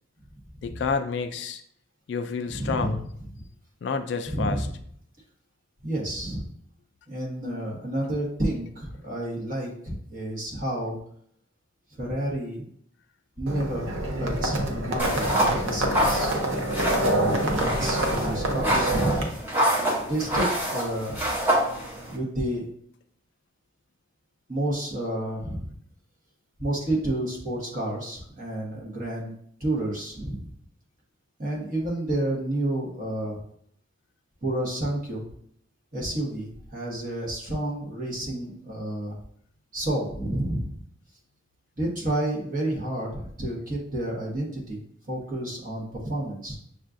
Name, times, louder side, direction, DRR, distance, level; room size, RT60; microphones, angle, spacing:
voice 1, 0.6-1.6 2.1-3.0 3.8-4.7, left 5 dB, 55° left, 9 dB, 0.3 m, -29 dB
voice 2, 2.5-2.9 3.4-3.5 4.3-4.7 5.8-6.5 7.1-11.0 11.9-12.7 13.4-16.3 17.0-19.4 20.1-21.2 22.1-22.7 24.5-25.7 26.6-29.3 29.6-30.5 31.4-33.4 34.4-35.2 35.9-39.2 39.7-40.8 41.8-44.8 45.1-46.6, right 1 dB, 40° right, -3 dB, 1.1 m, -30 dB
Livestock farm animals working animals, 13.5-19.2, right 1 dB, 75° right, 0.6 m, -27 dB
sound 1, 15.0-22.2, right 1 dB, 10° right, 0.7 m, -27 dB
6.2 x 2.4 x 2.5 m, 0.66 s
head